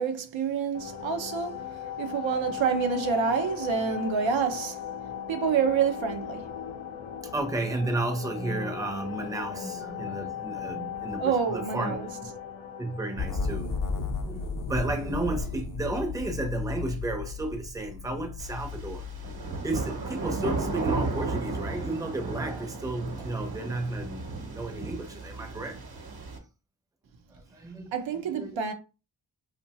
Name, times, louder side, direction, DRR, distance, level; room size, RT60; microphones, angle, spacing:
voice 1, 0.0-1.5 2.0-4.8 5.3-6.4 11.2-12.1 27.9-28.7, right 6 dB, 85° right, 0.6 m, -27 dB
sound 1, 0.7-14.3, left 9 dB, 85° left, 0.6 m, -38 dB
voice 2, 7.3-12.1 12.8-19.1 19.6-25.8 27.3-27.9 28.3-28.6, right 2 dB, 10° right, 0.5 m, -33 dB
sound 2, 13.2-20.0, left 4 dB, 45° left, 0.6 m, -34 dB
sound 3, 18.4-26.4, right 3 dB, 55° right, 0.9 m, -34 dB
2.6 x 2.1 x 2.8 m
wide cardioid pair, 90°, 45 cm